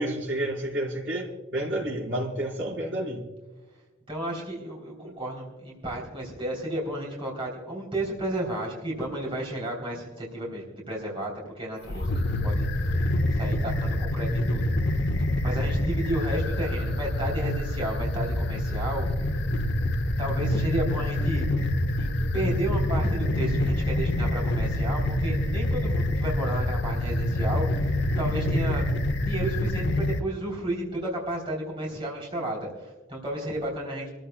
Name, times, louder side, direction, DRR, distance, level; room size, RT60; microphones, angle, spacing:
voice 1, 0.0-3.2 5.0-5.1, right 1 dB, 65° right, -3 dB, 4.5 m, -30 dB
voice 2, 4.1-14.7 15.4-19.1 20.2-21.4 22.0-28.8 29.2-34.1, right 1 dB, 25° right, -3 dB, 3.3 m, -32 dB
sound 1, 11.8-30.2, left 1 dB, 55° left, 0.8 m, -26 dB
28.0 x 14.5 x 2.3 m, 1.2 s
head